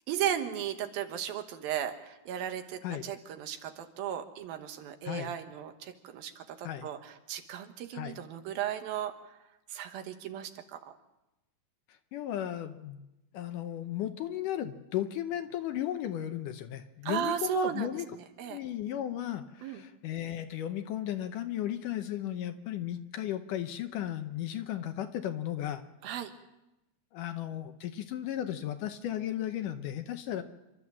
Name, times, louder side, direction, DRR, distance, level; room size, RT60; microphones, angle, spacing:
voice 1, 0.1-9.4 9.7-10.9 17.0-18.6 19.6-19.8 26.0-26.3, right 10 dB, 80° right, 7 dB, 3.0 m, -36 dB
voice 2, 12.1-13.1 13.3-18.1 18.5-25.8 27.1-30.4, left 11 dB, 75° left, 8 dB, 2.2 m, -35 dB
28.0 x 13.0 x 7.4 m, 0.96 s
omnidirectional pair, 4.2 m